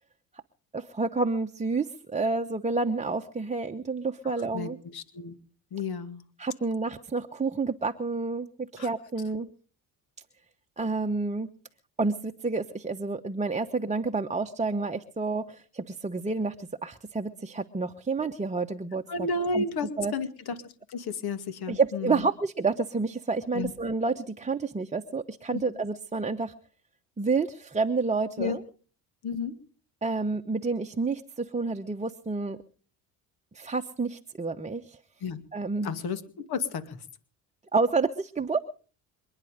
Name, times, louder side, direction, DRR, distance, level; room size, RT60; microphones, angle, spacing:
voice 1, 0.7-4.8 6.4-9.5 10.8-11.5 12.0-19.3 19.5-19.6 20.0-20.1 21.7-26.5 27.2-28.6 30.0-32.6 33.5-35.0 35.5-35.9 37.7-38.6, right 4 dB, 15° right, 5 dB, 1.0 m, -29 dB
voice 2, 4.5-5.4 5.7-6.2 8.8-8.9 19.1-22.3 23.5-23.7 25.5-25.6 28.4-28.6 29.2-29.5 35.2-35.4 35.8-37.0, left 4 dB, 60° left, 10 dB, 2.3 m, -32 dB
27.5 x 10.0 x 5.0 m, 0.41 s
supercardioid pair, 70°, 43 cm